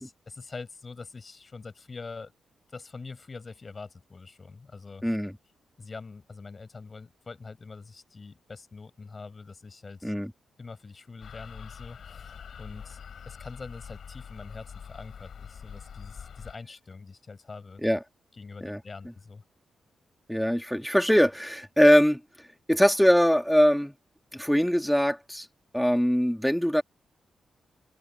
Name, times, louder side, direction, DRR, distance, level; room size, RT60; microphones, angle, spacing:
voice 1, 0.0-2.3 2.7-5.0 5.8-10.1 10.6-13.0 13.3-17.8 18.3-19.4, left 4 dB, 25° left, 7.2 m, -44 dB
voice 2, 5.0-5.3 10.0-10.3 17.8-18.0 18.6-18.8 20.3-22.2 22.7-23.9 24.3-25.5 25.7-26.8, equal, ahead, 2.1 m, -22 dB
sound 1, 11.2-16.6, left 7 dB, 55° left, 4.4 m, -44 dB
wide cardioid pair, 175°, 0 cm